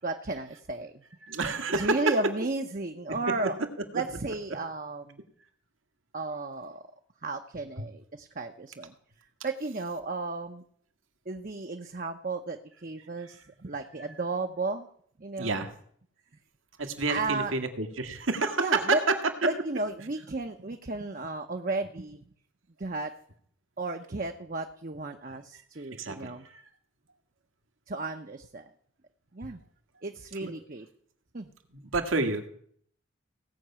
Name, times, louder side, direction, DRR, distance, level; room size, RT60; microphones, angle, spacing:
voice 1, 0.0-1.0 1.7-3.6 3.9-5.2 6.1-6.9 7.2-8.9 9.4-10.6 11.3-14.9 15.2-15.6 17.1-17.5 18.6-19.0 19.4-22.2 22.8-23.1 23.8-26.5 27.9-28.7 29.3-29.6 30.0-30.9 31.3-31.5, right 3 dB, 40° right, 5 dB, 0.8 m, -33 dB
voice 2, 1.2-2.0 15.4-15.7 16.8-19.2 26.0-26.6 30.4-30.5 31.7-32.5, right 3 dB, 80° right, 6 dB, 1.9 m, -29 dB
17.5 x 6.0 x 8.7 m, 0.62 s
head